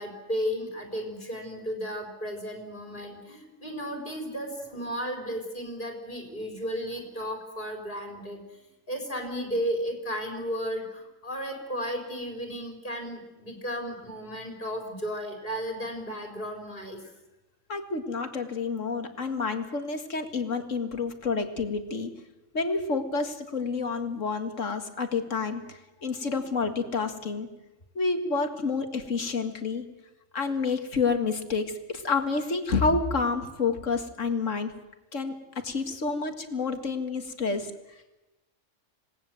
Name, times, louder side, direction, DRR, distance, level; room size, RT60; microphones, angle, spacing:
voice 1, 0.0-8.6 8.9-17.0 37.5-37.6, equal, 40° left, 2 dB, 4.5 m, -34 dB
voice 2, 17.7-22.1 22.5-27.5 28.0-29.8 30.3-34.7 35.1-35.4 35.6-37.7, left 4 dB, 80° left, 7 dB, 2.3 m, -29 dB
27.0 x 19.0 x 7.8 m, 1.0 s
omnidirectional pair, 1.3 m